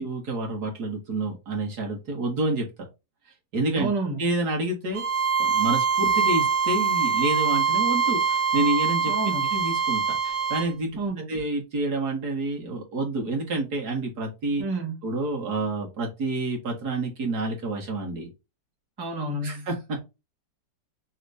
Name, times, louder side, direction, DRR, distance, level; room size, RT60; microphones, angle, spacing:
voice 1, 0.0-2.7 3.5-3.9 4.2-5.0 5.4-9.1 9.5-11.0 11.3-14.6 15.0-18.3 19.4-20.0, right 2 dB, 60° right, 1.9 m, -28 dB
voice 2, 3.8-4.2 9.1-9.5 10.9-11.3 14.6-15.0 19.0-19.7, right 2 dB, 15° right, 1.2 m, -29 dB
Bowed string instrument, 4.9-10.7, right 6 dB, 40° right, 0.8 m, -24 dB
6.0 x 3.1 x 2.7 m
omnidirectional pair, 1.9 m